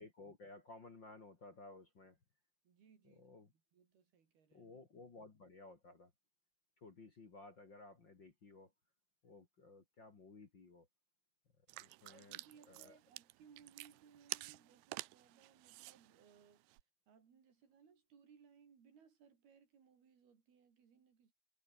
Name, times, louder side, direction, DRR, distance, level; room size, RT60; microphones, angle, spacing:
voice 1, 0.0-2.2 3.0-3.5 4.5-6.1 6.8-8.7 9.2-10.9 11.7-12.4 12.7-13.0, left 3 dB, 35° left, 2.6 m, -57 dB
voice 2, 2.6-4.7 12.1-16.7 17.1-21.3, right 7 dB, 70° right, 5.8 m, -66 dB
sound 1, 11.7-16.8, right 21 dB, 90° right, 2.8 m, -50 dB
omnidirectional pair, 4.7 m